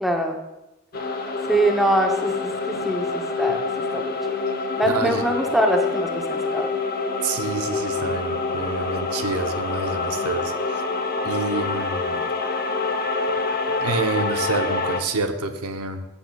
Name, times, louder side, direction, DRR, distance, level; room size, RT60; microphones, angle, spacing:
voice 1, 0.0-0.3 1.5-3.6 3.9-4.1 4.8-6.7, right 1 dB, ahead, 2 dB, 0.6 m, -23 dB
sound 1, 0.9-15.0, left 3 dB, 40° left, 0.8 m, -26 dB
voice 2, 4.8-5.3 7.2-10.8 11.2-12.2 13.7-16.0, right 3 dB, 85° right, 7 dB, 0.8 m, -28 dB
15.0 x 7.1 x 2.3 m, 0.98 s
head